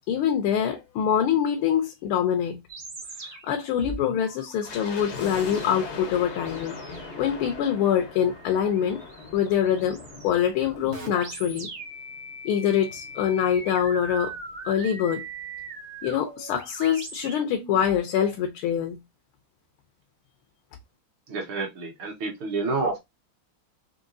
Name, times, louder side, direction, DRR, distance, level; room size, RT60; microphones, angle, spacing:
voice 1, 0.1-2.6 3.2-9.0 9.3-11.7 12.4-14.3 14.6-15.2 16.0-19.0, left 9 dB, 85° left, 1.6 m, -25 dB
sound 1, 2.7-18.0, right 3 dB, 55° right, 0.6 m, -41 dB
sound 2, 4.6-11.9 12.2-12.3 13.0-14.8 15.0-15.1 15.4-15.7 16.1-16.2, left 4 dB, 60° left, 0.7 m, -41 dB
voice 2, 21.3-23.0, right 3 dB, 75° right, 2.0 m, -29 dB
4.9 x 3.0 x 2.5 m
omnidirectional pair, 2.3 m